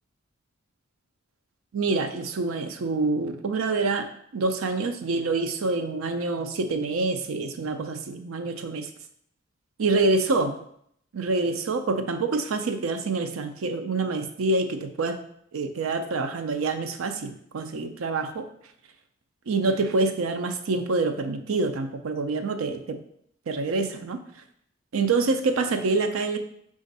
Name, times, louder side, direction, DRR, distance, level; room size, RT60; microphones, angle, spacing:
voice 1, 1.7-8.9 9.8-10.6 11.1-15.2 15.5-18.5 19.5-23.0 23.5-24.2 24.9-26.4, right 3 dB, 85° right, 8 dB, 0.5 m, -26 dB
5.2 x 2.5 x 3.9 m, 0.69 s
head